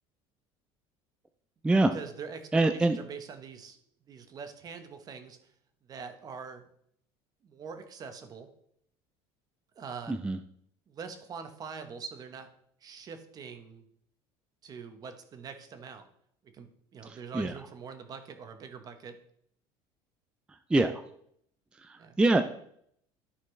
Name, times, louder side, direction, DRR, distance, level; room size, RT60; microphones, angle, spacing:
voice 1, 1.9-3.8 4.1-5.5 5.9-6.7 7.4-8.5 9.7-10.1 10.9-12.5 12.8-13.8 14.6-16.1 16.4-19.2 22.0-22.2, right 6 dB, 30° right, 8 dB, 1.0 m, -44 dB
voice 2, 2.5-3.0 10.1-10.4 17.1-17.5 20.7-20.9 21.8-22.4, right 2 dB, 10° right, 8 dB, 0.4 m, -25 dB
13.0 x 4.3 x 3.2 m, 0.68 s
cardioid pair, 145°, 12 cm